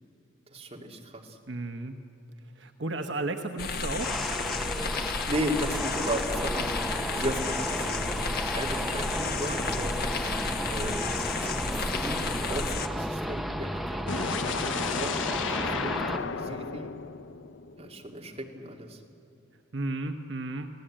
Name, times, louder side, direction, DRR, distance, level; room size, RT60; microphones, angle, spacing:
voice 1, 0.5-1.4 5.3-8.2 8.5-9.9 10.7-14.2 14.4-16.9 17.8-19.0, equal, 35° right, 0 dB, 2.6 m, -36 dB
voice 2, 1.5-2.0 2.5-4.2 10.8-11.1 19.7-20.7, right 2 dB, 70° right, 5 dB, 1.1 m, -34 dB
sound 1, 3.6-12.9, left 4 dB, 55° left, 1.3 m, -32 dB
sound 2, 4.0-16.2, equal, ahead, 0.6 m, -33 dB
sound 3, 14.1-18.0, left 5 dB, 80° left, 0.7 m, -33 dB
27.5 x 18.0 x 8.9 m, 2.7 s
head